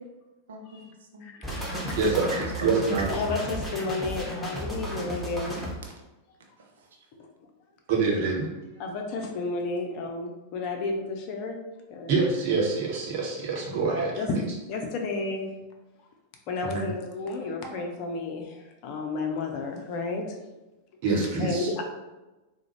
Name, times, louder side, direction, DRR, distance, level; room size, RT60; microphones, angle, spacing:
voice 1, 0.5-2.7 3.0-3.4 6.6-7.1, right 2 dB, 65° right, 1 dB, 0.5 m, -41 dB
voice 2, 1.2-1.6 3.1-5.6 8.8-11.6 11.9-12.1 13.9-15.5 16.5-20.2 21.4-21.8, left 3 dB, 45° left, 2 dB, 0.6 m, -32 dB
sound 1, 1.4-5.7, equal, 5° right, 0.8 m, -34 dB
voice 3, 2.0-2.3 2.6-3.1 7.9-8.5 12.1-14.1 16.6-16.9 21.0-21.7, right 4 dB, 45° right, -2 dB, 1.0 m, -25 dB
3.7 x 2.1 x 3.0 m, 1.1 s
figure-of-eight pair, 90°, 0 cm